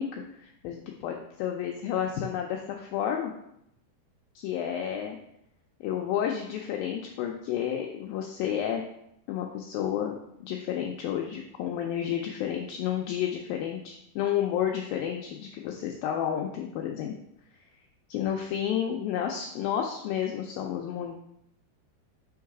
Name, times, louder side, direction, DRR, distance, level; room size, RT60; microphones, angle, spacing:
voice 1, 0.0-3.3 4.4-5.2 5.8-8.8 9.3-17.2 18.1-21.2, left 9 dB, 85° left, 2 dB, 2.0 m, -31 dB
5.5 x 3.9 x 4.7 m, 0.77 s
omnidirectional pair, 4.7 m